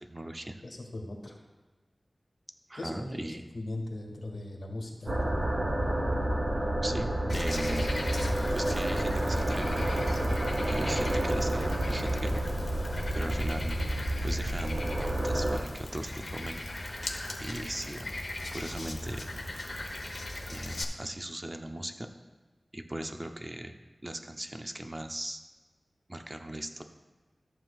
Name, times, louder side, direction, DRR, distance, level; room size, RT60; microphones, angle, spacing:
voice 1, 0.0-0.6 2.7-3.5 6.8-7.9 8.5-9.8 10.6-12.4 13.1-13.8 14.2-16.6 17.4-18.1 18.5-19.3 20.5-22.1 22.7-25.4 26.1-26.8, right 1 dB, 30° right, 6 dB, 0.6 m, -38 dB
voice 2, 0.6-1.4 2.7-3.0 3.5-5.2, left 2 dB, 75° left, -1 dB, 1.7 m, -39 dB
sound 1, 5.1-15.6, right 1 dB, 65° right, 1.1 m, -29 dB
Frog, 7.3-20.8, left 1 dB, 55° left, 1.0 m, -39 dB
14.0 x 7.5 x 2.4 m, 1.3 s
wide cardioid pair, 80°, 0 cm